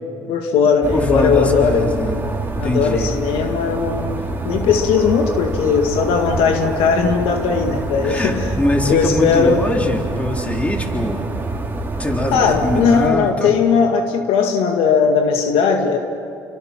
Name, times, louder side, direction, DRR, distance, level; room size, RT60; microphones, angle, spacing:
voice 1, 0.3-1.9 2.6-8.5 8.9-9.7 12.3-16.0, left 6 dB, 80° left, 4 dB, 1.9 m, -18 dB
sound 1, 0.8-13.1, right 2 dB, 20° right, 2.7 m, -26 dB
voice 2, 0.9-2.2 2.6-3.1 8.0-11.3 12.0-13.5, left 1 dB, 15° left, 1 dB, 3.5 m, -22 dB
29.0 x 23.5 x 6.0 m, 2.6 s
cardioid pair, 90°, 10 cm